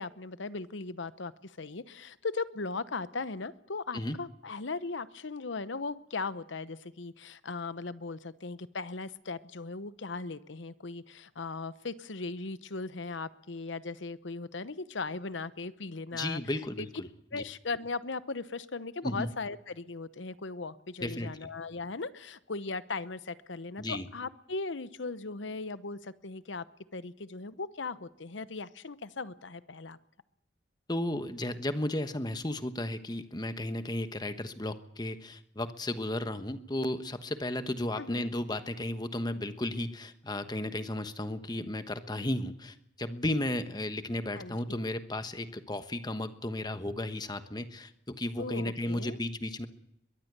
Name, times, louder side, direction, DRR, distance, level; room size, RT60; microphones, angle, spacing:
voice 1, 0.0-16.4 16.8-16.9 17.3-26.6 26.9-30.0 38.0-38.3 44.3-44.8 48.4-49.2, left 3 dB, 75° left, 15 dB, 0.9 m, -38 dB
voice 2, 16.1-17.1 17.3-17.4 19.0-19.3 21.0-21.4 23.8-24.1 30.9-49.7, left 1 dB, 20° left, 10 dB, 1.2 m, -34 dB
22.0 x 14.5 x 8.2 m, 0.84 s
head